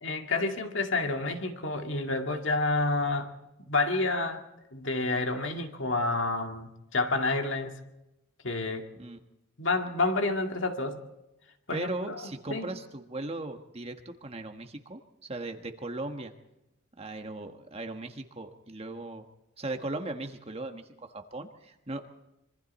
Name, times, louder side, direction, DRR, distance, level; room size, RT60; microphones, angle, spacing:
voice 1, 0.0-3.3 3.7-4.4 4.7-7.8 8.4-8.8 9.6-11.0 11.7-12.7, left 2 dB, 60° left, 4 dB, 2.1 m, -29 dB
voice 2, 11.7-14.0 14.2-16.3 17.0-19.3 19.6-22.1, right 2 dB, 30° right, 5 dB, 1.4 m, -38 dB
26.0 x 23.5 x 4.3 m, 0.94 s
head